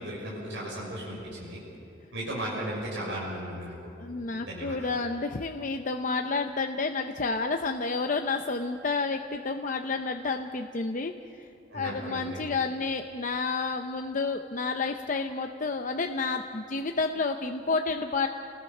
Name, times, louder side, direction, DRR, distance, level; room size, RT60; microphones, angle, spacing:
voice 1, 0.0-1.6 2.1-3.7 4.4-4.7 11.7-12.4, right 1 dB, 75° right, -5 dB, 6.0 m, -35 dB
voice 2, 4.0-11.2 11.7-18.3, left 4 dB, 45° left, 5 dB, 0.7 m, -30 dB
28.5 x 20.0 x 5.6 m, 2.5 s
head